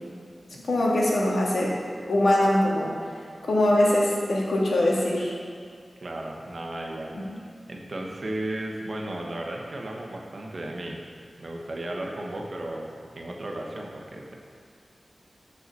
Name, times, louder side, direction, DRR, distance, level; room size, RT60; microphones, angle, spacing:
voice 1, 0.7-1.7 2.1-2.9 3.4-5.4 7.3-7.4, left 1 dB, 85° left, -4 dB, 1.7 m, -22 dB
voice 2, 6.0-11.0 11.4-14.3, right 1 dB, 50° right, 0 dB, 1.2 m, -35 dB
7.8 x 4.8 x 6.8 m, 2.2 s
wide cardioid pair, 110°, 0 cm